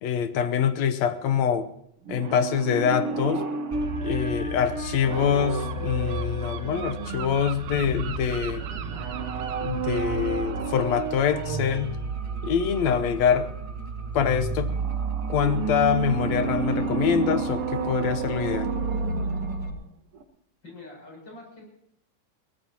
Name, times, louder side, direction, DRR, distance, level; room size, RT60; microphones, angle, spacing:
voice 1, 0.0-1.7 2.1-3.4 4.0-8.6 9.6-12.0 12.4-13.5 14.1-14.7 15.3-18.8, left 8 dB, 65° left, 11 dB, 2.1 m, -25 dB
sound 1, 2.1-7.8 8.9-11.9 14.7-19.9 20.2-20.3, right 5 dB, 55° right, 2.0 m, -32 dB
sound 2, 3.7-19.7, right 2 dB, 25° right, 0.7 m, -33 dB
Gull seagull, 5.1-12.6, right 8 dB, 90° right, 2.6 m, -41 dB
voice 2, 20.6-21.6, left 2 dB, 35° left, -1 dB, 8.5 m, -45 dB
22.5 x 17.0 x 3.0 m, 0.75 s
omnidirectional pair, 3.6 m